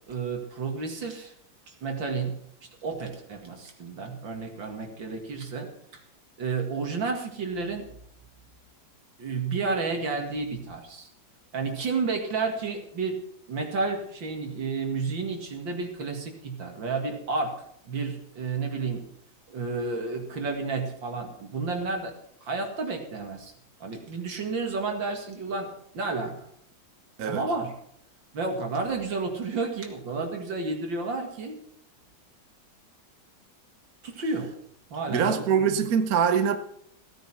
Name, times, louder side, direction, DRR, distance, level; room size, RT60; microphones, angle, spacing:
voice 1, 0.1-1.3 1.7-2.3 2.8-6.0 6.4-7.9 9.2-11.1 11.5-13.2 13.5-17.5 17.9-19.1 19.5-22.1 22.4-23.5 23.8-25.7 25.9-26.5 27.3-27.7 28.3-31.6 34.0-34.5 34.9-35.8, right 4 dB, 75° right, 2.8 m, -31 dB
voice 2, 35.1-36.6, right 7 dB, 55° right, 1.3 m, -23 dB
16.5 x 9.4 x 5.8 m
omnidirectional pair, 2.1 m